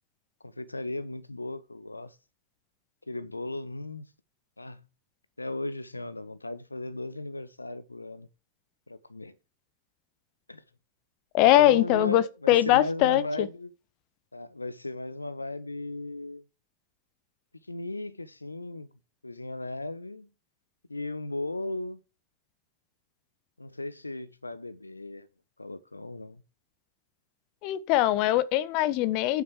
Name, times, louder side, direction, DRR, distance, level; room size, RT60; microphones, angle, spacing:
voice 1, 0.4-2.2 3.1-4.1 4.6-4.8 5.4-8.3 8.9-9.4 10.5-10.6 11.6-13.7 14.3-16.4 17.7-18.9 19.2-20.3 20.9-22.0 23.6-25.3 25.6-26.4, left 2 dB, 80° left, 0.7 m, -36 dB
voice 2, 11.3-13.5 27.6-29.4, left 14 dB, 45° left, 0.9 m, -22 dB
8.6 x 7.4 x 4.9 m
figure-of-eight pair, 90°, 0 cm